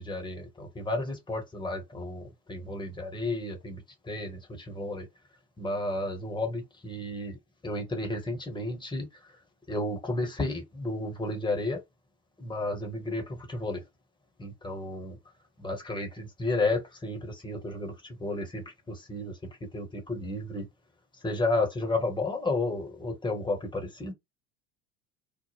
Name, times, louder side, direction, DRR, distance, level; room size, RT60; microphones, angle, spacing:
voice 1, 0.0-5.1 5.6-7.4 7.6-9.4 9.7-11.8 12.4-13.8 14.4-15.2 15.6-20.7 21.1-24.1, left 2 dB, 10° left, 1.0 m, -32 dB
3.3 x 2.0 x 2.9 m
figure-of-eight pair, 70°, 44 cm